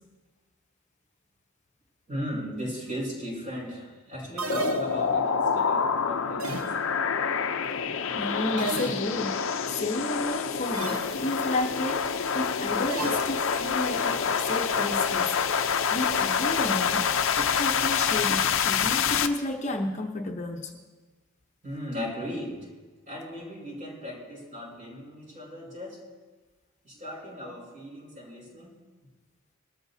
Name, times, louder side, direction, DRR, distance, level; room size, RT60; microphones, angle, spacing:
voice 1, 2.1-6.9 21.6-22.7 23.1-26.0 26.8-28.8, equal, 40° right, -3 dB, 5.2 m, -37 dB
sound 1, 4.4-5.3 6.4-7.1 8.6-9.4 10.7-11.3 12.9-13.8, right 2 dB, 80° right, 1.1 m, -35 dB
sound 2, 4.5-19.3, left 6 dB, 65° left, 0.6 m, -27 dB
voice 2, 8.1-17.1 17.4-20.7, left 1 dB, 35° left, 2 dB, 0.9 m, -32 dB
21.0 x 13.0 x 2.7 m, 1.3 s
head